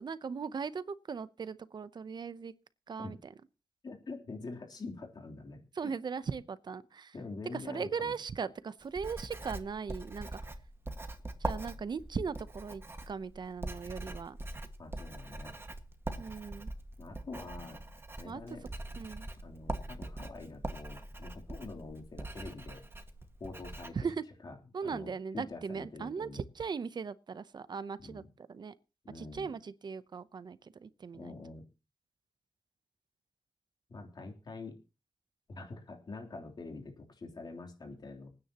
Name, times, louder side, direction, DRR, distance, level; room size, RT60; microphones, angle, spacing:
voice 1, 0.0-2.5 2.9-3.3 5.7-7.1 7.5-10.5 11.4-14.4 16.2-16.7 18.2-18.6 19.0-19.3 23.9-24.2 24.7-28.7 29.1-31.3, right 5 dB, 65° right, 0.8 m, -39 dB
voice 2, 3.8-5.6 7.1-8.1 14.8-15.6 17.0-17.8 18.2-18.6 19.4-22.8 23.4-24.0 24.4-24.5 24.8-26.4 28.0-28.3 29.0-29.5 31.1-31.6 33.9-34.7 35.5-38.3, left 3 dB, 65° left, 3.3 m, -45 dB
Writing, 8.8-23.9, right 2 dB, 30° right, 1.8 m, -42 dB
26.5 x 9.7 x 3.0 m
cardioid pair, 70°, 8 cm